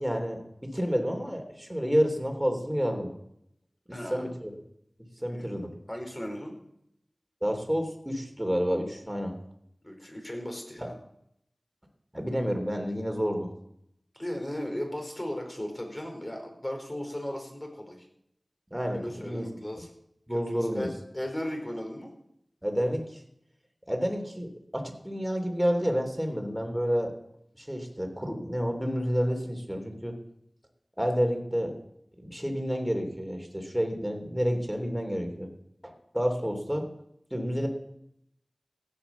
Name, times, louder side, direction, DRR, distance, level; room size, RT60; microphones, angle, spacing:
voice 1, 0.0-3.1 4.1-4.5 5.2-5.7 7.4-9.3 12.1-13.5 18.7-19.5 20.3-20.9 22.6-23.2 23.9-27.1 27.6-30.2 31.0-31.8 32.2-35.5 35.8-36.9 37.3-37.7, equal, 5° right, 3 dB, 3.3 m, -29 dB
voice 2, 3.9-4.3 5.3-5.5 5.9-6.6 9.8-10.9 14.1-18.1 18.9-19.9 20.3-22.1, left 1 dB, 25° left, 3 dB, 4.8 m, -36 dB
16.0 x 9.5 x 7.1 m, 0.76 s
wide cardioid pair, 45°, 0 cm